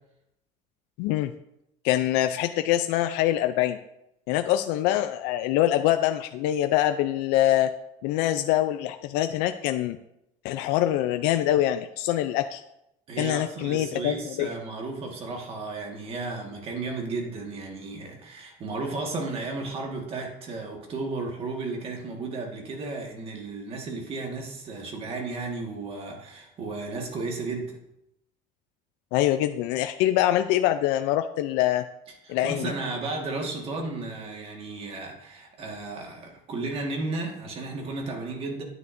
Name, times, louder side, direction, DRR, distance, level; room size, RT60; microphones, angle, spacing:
voice 1, 1.0-1.3 1.8-3.8 4.3-7.7 8.0-10.0 10.4-12.6 13.2-14.5 29.1-31.8 32.3-32.7, left 13 dB, 75° left, 8 dB, 0.4 m, -24 dB
voice 2, 13.1-27.7 32.2-38.6, right 3 dB, 35° right, 1 dB, 1.6 m, -34 dB
9.5 x 9.3 x 2.6 m, 0.84 s
cardioid pair, 170°, 18 cm